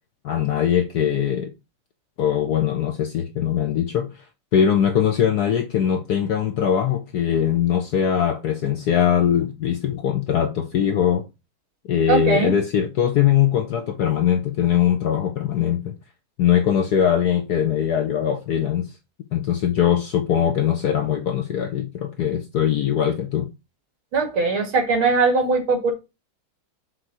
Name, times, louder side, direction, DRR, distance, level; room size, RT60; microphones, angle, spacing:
voice 1, 0.2-1.5 2.2-4.2 4.5-11.2 11.9-15.9 16.4-18.9 19.3-23.5, left 9 dB, 65° left, 1.0 m, -21 dB
voice 2, 12.1-12.6 24.1-25.9, right 4 dB, 75° right, 3.0 m, -20 dB
6.4 x 3.9 x 5.9 m
omnidirectional pair, 2.3 m